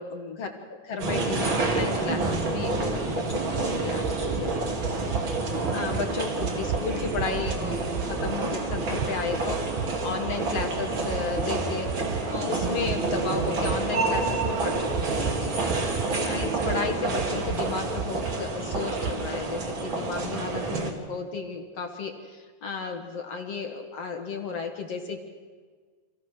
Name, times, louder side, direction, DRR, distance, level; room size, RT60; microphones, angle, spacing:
voice 1, 0.0-5.4 5.7-11.9 12.3-15.6 16.2-25.2, left 5 dB, 60° left, 3 dB, 2.4 m, -34 dB
sound 1, 1.0-20.9, right 3 dB, 45° right, 2.7 m, -28 dB
sound 2, 3.3-3.7 4.0-4.4 4.8-5.3 5.6-6.0 6.4-6.9 7.2-7.6 7.9-8.4 8.7-9.1 9.5-9.9 10.3-10.7 11.1-11.5 11.9-12.2 12.6-13.0 13.4-13.8 14.1-14.5 14.9-15.4 15.7-16.1 16.4-16.8 17.2-17.6 18.0-18.4 18.7-19.1, right 9 dB, 90° right, 2.5 m, -32 dB
27.5 x 15.0 x 6.5 m, 1.5 s
omnidirectional pair, 3.5 m